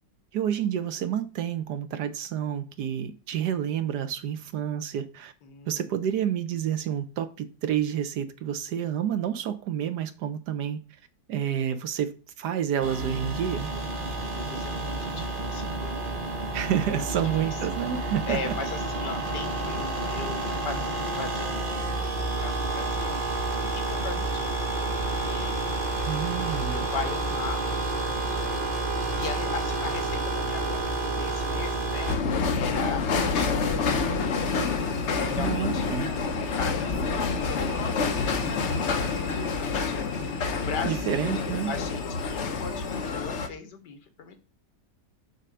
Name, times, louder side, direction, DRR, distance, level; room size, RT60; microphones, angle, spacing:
voice 1, 0.3-5.3 5.7-10.8 11.3-13.7 16.5-18.5 26.0-26.9 35.4-36.1 40.8-41.7, right 9 dB, 70° right, 1.3 m, -29 dB
voice 2, 5.4-5.9 13.9-16.0 16.9-17.6 18.3-23.2 23.7-25.6 26.5-32.1 32.5-34.4 35.0-35.9 36.3-40.1 40.5-44.4, left 5 dB, 75° left, 1.9 m, -39 dB
sound 1, 12.8-32.2, right 2 dB, 30° right, 1.3 m, -30 dB
sound 2, 32.1-43.5, left 4 dB, 55° left, 0.9 m, -27 dB
6.7 x 4.0 x 6.2 m
omnidirectional pair, 1.9 m